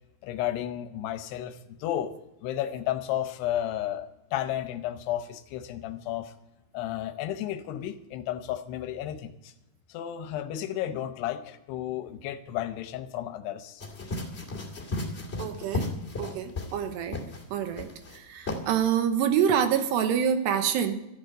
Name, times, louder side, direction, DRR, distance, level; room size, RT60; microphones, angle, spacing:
voice 1, 0.2-2.1 2.4-6.3 6.7-9.5 9.9-13.8, left 12 dB, 75° left, 9 dB, 2.6 m, -33 dB
sound 1, 13.8-16.8 17.1-17.4 17.8-18.2 18.5-18.6, left 2 dB, 35° left, 1.0 m, -34 dB
voice 2, 15.4-15.9 16.2-17.2 17.5-17.9 18.1-20.9, right 8 dB, 75° right, 8 dB, 3.0 m, -26 dB
13.5 x 10.5 x 7.9 m, 0.90 s
omnidirectional pair, 5.3 m